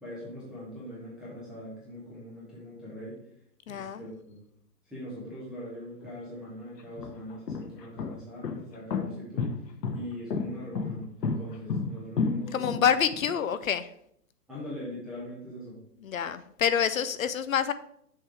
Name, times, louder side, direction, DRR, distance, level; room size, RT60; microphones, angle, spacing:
voice 1, 0.0-3.2 3.7-4.4 4.9-9.5 9.9-12.8 14.5-15.8, equal, ahead, -9 dB, 0.5 m, -42 dB
voice 2, 3.7-4.1 12.5-13.9 16.0-17.7, left 8 dB, 55° left, 13 dB, 0.5 m, -27 dB
sound 1, 6.0-6.1 6.8-13.3, left 5 dB, 80° left, 1.2 m, -31 dB
6.4 x 3.3 x 5.9 m, 0.70 s
hypercardioid pair, 145°, 49 cm